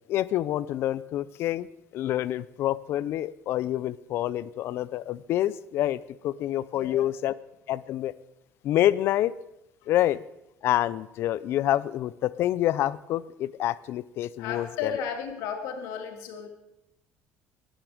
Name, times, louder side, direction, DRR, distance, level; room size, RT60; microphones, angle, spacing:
voice 1, 0.1-1.7 1.9-7.3 7.7-8.1 8.6-9.3 9.9-10.2 10.6-14.9, left 13 dB, 50° left, 18 dB, 0.5 m, -27 dB
voice 2, 6.7-7.1 14.4-16.5, left 7 dB, 85° left, 4 dB, 2.5 m, -34 dB
21.5 x 8.9 x 5.0 m, 0.85 s
cardioid pair, 170°, 5 cm